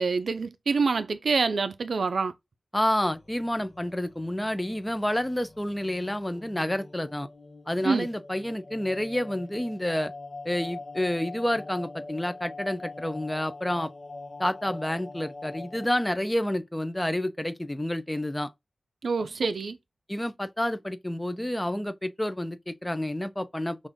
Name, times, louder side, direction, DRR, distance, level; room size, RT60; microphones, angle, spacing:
voice 1, 0.0-2.3 7.8-8.1 19.0-19.8, right 4 dB, 75° right, 0.4 m, -26 dB
voice 2, 2.7-7.3 7.7-10.1 10.4-13.9 14.4-18.5 20.1-23.9, left 1 dB, 10° left, 0.5 m, -29 dB
sound 1, 3.1-15.9, left 3 dB, 50° left, 1.2 m, -43 dB
5.4 x 2.5 x 3.5 m
wide cardioid pair, 115°, 0 cm